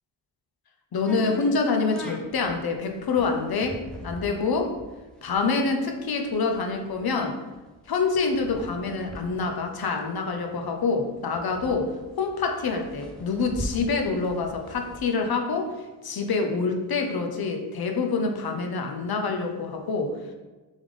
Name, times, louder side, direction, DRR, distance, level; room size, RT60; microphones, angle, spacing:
voice 1, 0.9-4.7 5.2-7.4 7.9-11.9 12.2-15.7 16.0-20.1, left 4 dB, 55° left, 4 dB, 0.8 m, -26 dB
sound 1, 1.1-10.6 10.9-11.0 11.2-15.1, equal, ahead, 0.8 m, -41 dB
3.6 x 3.3 x 3.7 m, 1.2 s
supercardioid pair, 40°, 45 cm